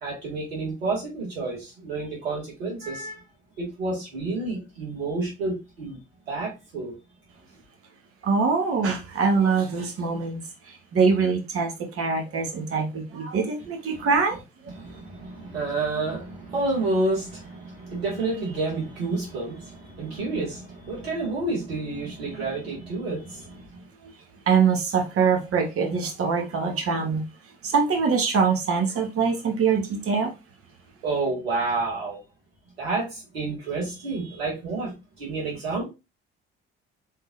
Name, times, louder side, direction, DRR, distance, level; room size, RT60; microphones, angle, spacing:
voice 1, 0.0-3.2 3.6-6.0 6.3-6.9 14.7-23.6 31.0-32.2 32.8-35.9, right 3 dB, 85° right, 1.9 m, -29 dB
voice 2, 8.2-14.4 24.0-24.1 24.5-27.2 27.6-30.3, right 5 dB, 50° right, 1.3 m, -24 dB
3.8 x 3.7 x 2.6 m
hypercardioid pair, 50°, 30 cm